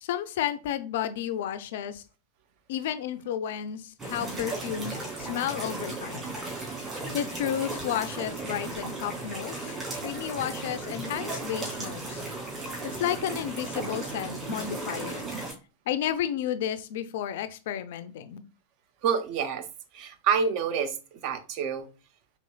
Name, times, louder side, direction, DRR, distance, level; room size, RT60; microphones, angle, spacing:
voice 1, 0.0-2.0 2.7-6.4 6.8-6.9 7.1-9.7 10.0-12.2 12.8-15.3 15.9-18.4, left 10 dB, 55° left, 0.3 m, -32 dB
sound 1, 4.0-15.5, right 2 dB, 20° right, 1.8 m, -35 dB
voice 2, 19.0-19.7 19.9-21.0 21.2-21.9, right 6 dB, 45° right, 0.5 m, -27 dB
4.2 x 2.9 x 2.2 m
figure-of-eight pair, 90°, 0 cm